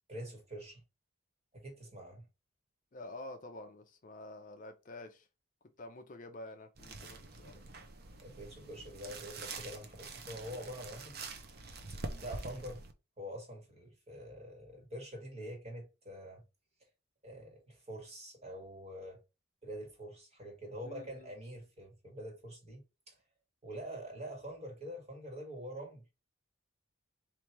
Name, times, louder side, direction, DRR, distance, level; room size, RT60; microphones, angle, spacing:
voice 1, 0.1-0.8 1.5-2.2 8.2-11.1 11.9-12.8 13.2-16.4 17.2-19.2 19.6-23.2 23.6-26.0, equal, 30° right, 1.6 m, -45 dB
voice 2, 2.9-5.3 5.8-7.6 20.8-21.3, left 2 dB, 40° left, 0.5 m, -48 dB
sound 1, 6.8-12.9, right 3 dB, 50° right, 0.7 m, -46 dB
3.2 x 2.6 x 4.5 m
head